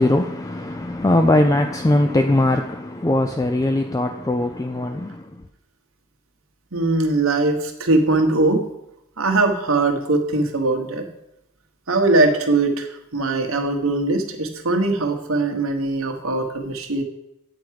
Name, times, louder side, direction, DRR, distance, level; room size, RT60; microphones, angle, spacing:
voice 1, 0.0-5.3, left 1 dB, 15° left, 0.4 m, -20 dB
voice 2, 6.7-8.6 9.2-11.0 11.9-17.0, right 2 dB, 70° right, 1.3 m, -21 dB
8.7 x 4.7 x 7.5 m
head